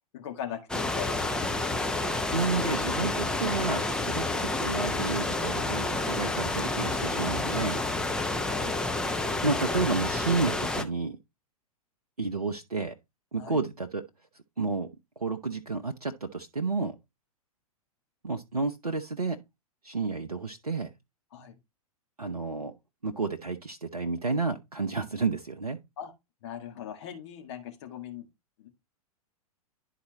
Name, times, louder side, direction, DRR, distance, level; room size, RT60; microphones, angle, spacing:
voice 1, 0.1-1.3 2.1-2.3 3.0-3.4 8.1-8.7 13.4-13.6 21.3-21.6 26.0-26.1 26.4-28.3 28.6-28.7, left 9 dB, 45° left, 1.7 m, -41 dB
sound 1, 0.7-10.8, left 2 dB, 5° left, 0.7 m, -29 dB
voice 2, 2.3-7.8 9.4-11.2 12.2-12.9 13.3-14.0 14.6-14.9 15.2-17.0 18.2-19.4 19.8-20.9 22.2-22.7 23.0-25.8, right 4 dB, 85° right, 0.6 m, -31 dB
11.0 x 4.1 x 2.9 m
figure-of-eight pair, 105°, 19 cm